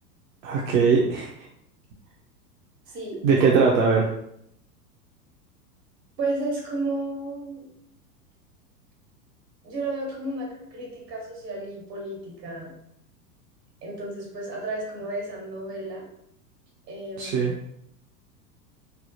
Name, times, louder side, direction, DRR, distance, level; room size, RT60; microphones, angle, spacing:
voice 1, 0.4-1.3 3.2-4.0 17.2-17.5, right 5 dB, 55° right, -2 dB, 0.6 m, -20 dB
voice 2, 2.9-3.7 6.2-7.6 9.6-12.7 13.8-16.1 16.9-17.6, right 2 dB, 75° right, -1 dB, 1.4 m, -33 dB
3.3 x 2.0 x 2.7 m, 0.74 s
hypercardioid pair, 95°, 49 cm